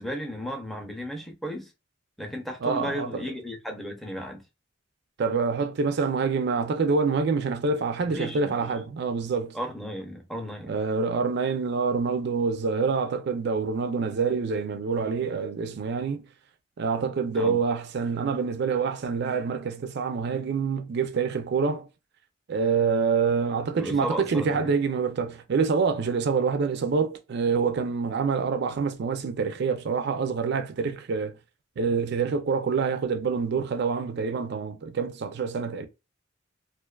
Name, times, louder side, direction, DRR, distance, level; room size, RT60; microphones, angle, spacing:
voice 1, 0.0-1.7 2.2-4.4 8.1-8.7 9.5-10.8 17.3-17.6 23.8-24.7, equal, ahead, 0.5 m, -34 dB
voice 2, 2.6-3.2 5.2-9.5 10.7-16.2 16.8-21.9 22.5-31.3 31.8-35.9, right 5 dB, 60° right, 0.4 m, -26 dB
2.4 x 2.3 x 2.2 m
head